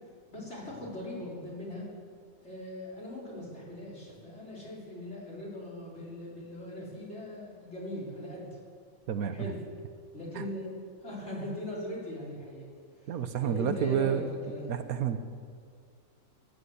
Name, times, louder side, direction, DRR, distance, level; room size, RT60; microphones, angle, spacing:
voice 1, 0.3-1.9 2.4-8.6 9.3-9.6 10.1-10.7 11.0-12.7 13.0-13.1 13.4-14.7, left 1 dB, 45° left, -5 dB, 4.8 m, -40 dB
voice 2, 9.1-9.5 10.3-10.5 13.1-14.3 14.7-15.2, right 8 dB, 75° right, 10 dB, 1.3 m, -29 dB
15.5 x 11.0 x 8.1 m, 2.1 s
omnidirectional pair, 1.6 m